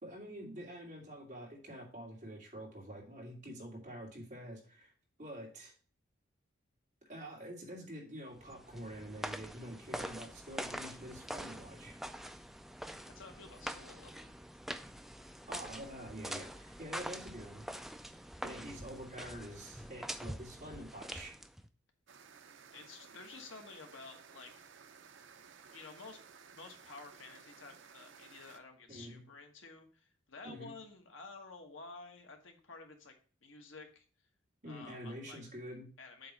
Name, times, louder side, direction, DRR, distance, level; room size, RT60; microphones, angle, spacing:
voice 1, 0.0-4.9 5.2-5.7 7.1-12.0 15.5-17.7 18.4-21.3 28.9-29.2 30.4-30.7 34.6-35.9, equal, 40° right, -3 dB, 2.7 m, -47 dB
sound 1, 8.4-21.7, right 1 dB, ahead, 0.3 m, -45 dB
voice 2, 13.1-14.3 18.0-18.2 22.6-24.5 25.7-26.2 26.5-33.1 33.4-34.0 34.6-35.4 36.0-36.3, left 4 dB, 75° left, 3 dB, 1.3 m, -52 dB
sound 2, 22.1-28.6, right 6 dB, 65° right, 0.6 m, -57 dB
7.7 x 3.2 x 6.3 m, 0.40 s
head